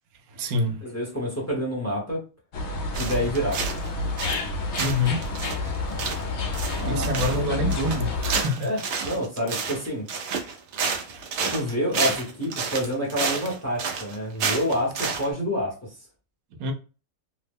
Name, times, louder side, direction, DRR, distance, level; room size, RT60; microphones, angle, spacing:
voice 1, 0.3-0.8 2.9-3.1 4.6-5.4 5.9-6.1 6.6-8.7 10.9-11.3 11.8-12.0 16.6-16.7, left 1 dB, 90° right, 1.1 m, -28 dB
voice 2, 0.8-2.2 3.0-3.7 6.7-7.3 8.6-10.1 11.5-15.9, equal, 15° left, 0.7 m, -28 dB
sound 1, 2.5-8.4, left 3 dB, 60° left, 0.8 m, -29 dB
sound 2, 2.9-3.9 4.2-4.5 4.8-15.3, right 5 dB, 60° right, 0.8 m, -30 dB
2.8 x 2.1 x 3.4 m
omnidirectional pair, 1.5 m